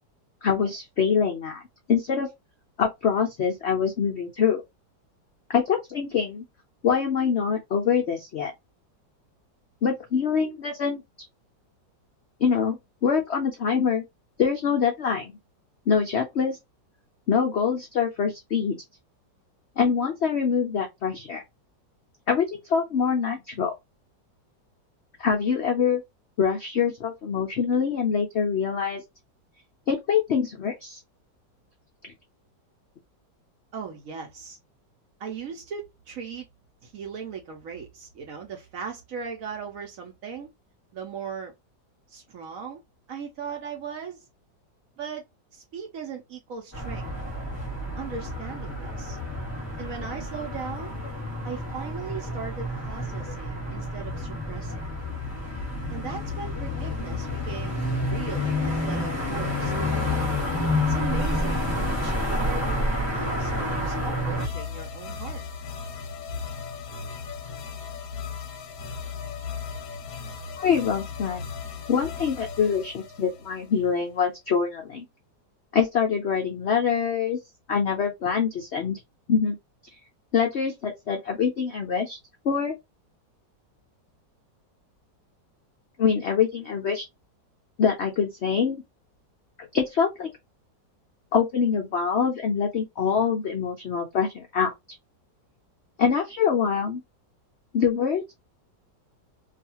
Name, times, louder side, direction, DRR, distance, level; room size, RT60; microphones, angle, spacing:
voice 1, 0.4-1.6 1.9-2.3 2.8-4.6 5.5-6.4 6.8-8.5 9.8-11.0 12.4-14.0 14.4-15.3 15.9-16.6 17.3-18.8 19.8-21.4 22.3-23.7 25.2-26.0 26.4-29.0 29.9-31.0 70.6-71.4 71.9-75.1 75.7-77.4 77.7-79.0 79.3-79.6 80.3-82.2 82.4-82.8 86.0-87.0 87.8-88.8 89.7-90.3 91.3-94.7 96.0-97.0 97.7-98.3, left 6 dB, 85° left, 0.6 m, -24 dB
voice 2, 33.7-34.6 35.2-36.5 36.8-40.5 40.9-41.5 42.1-42.8 43.1-44.3 45.0-45.2 45.5-47.1 48.0-49.2 49.8-50.9 51.4-54.8 55.9-59.7 60.9-65.4, right 6 dB, 65° right, 0.9 m, -38 dB
sound 1, 46.7-64.5, left 1 dB, 10° left, 1.0 m, -29 dB
sound 2, 60.9-62.7 64.4-74.1, left 5 dB, 65° left, 1.0 m, -37 dB
2.7 x 2.4 x 2.7 m
omnidirectional pair, 1.9 m